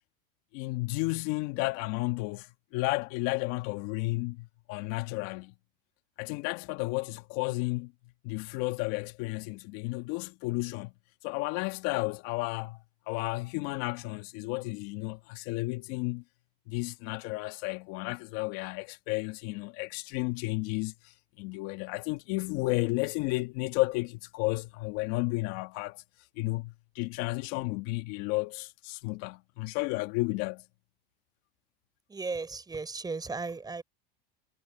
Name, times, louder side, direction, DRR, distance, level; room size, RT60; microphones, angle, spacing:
voice 1, 0.5-5.5 6.2-7.9 8.2-10.9 11.2-16.2 16.7-26.0 26.4-30.6, left 23 dB, 55° left, 1.7 m, -32 dB
voice 2, 32.1-33.8, right 4 dB, 15° right, 4.8 m, -35 dB
supercardioid pair, 120°, 29 cm